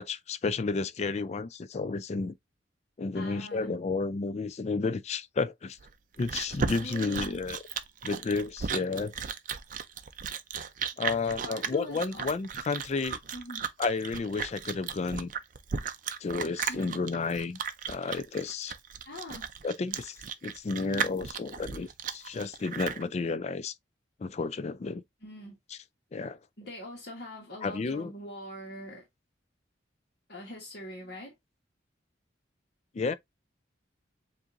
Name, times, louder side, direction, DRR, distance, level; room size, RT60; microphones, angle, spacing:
voice 1, 0.0-2.3 3.0-5.8 6.2-7.6 8.0-9.1 11.0-13.2 13.8-15.3 16.2-17.6 17.9-18.7 19.6-23.7 24.2-25.0 25.7-25.8 26.1-26.4 27.6-28.1 32.9-33.1, left 4 dB, 35° left, 0.4 m, -32 dB
voice 2, 3.1-3.7 6.8-7.4 11.2-12.2 13.3-13.6 16.7-17.0 19.0-19.5 20.8-21.1 25.2-25.6 26.6-29.0 30.3-31.3, left 1 dB, 60° left, 1.4 m, -43 dB
Chewing mastication, 5.8-23.0, right 6 dB, 45° right, 0.5 m, -35 dB
7.4 x 2.6 x 2.5 m
head